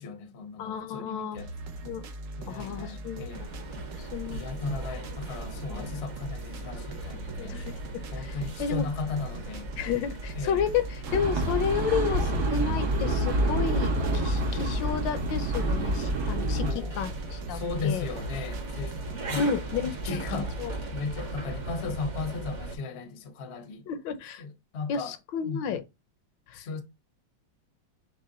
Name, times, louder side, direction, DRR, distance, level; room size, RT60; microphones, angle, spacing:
voice 1, 0.0-1.5 2.4-3.5 4.3-7.6 8.1-9.7 10.3-10.6 16.6-17.0 17.5-19.0 19.3-19.4 20.0-20.5 20.9-23.8 24.4-25.1 25.4-25.6 26.5-26.8, left 4 dB, 50° left, 0.8 m, -36 dB
voice 2, 0.6-1.4 1.8-2.0 2.5-3.6 4.0-4.4 5.7-5.9 7.4-8.8 9.7-16.6 16.9-18.0 19.4-20.0 20.6-20.7 23.9-24.4 24.9-25.8 26.5-26.6, left 7 dB, 75° left, 1.3 m, -32 dB
sound 1, 1.3-20.8, right 1 dB, 65° right, 0.8 m, -41 dB
sound 2, 3.3-22.8, right 2 dB, 45° right, 1.2 m, -39 dB
sound 3, 11.0-16.7, right 1 dB, 80° right, 2.1 m, -27 dB
6.4 x 2.2 x 3.8 m
omnidirectional pair, 2.2 m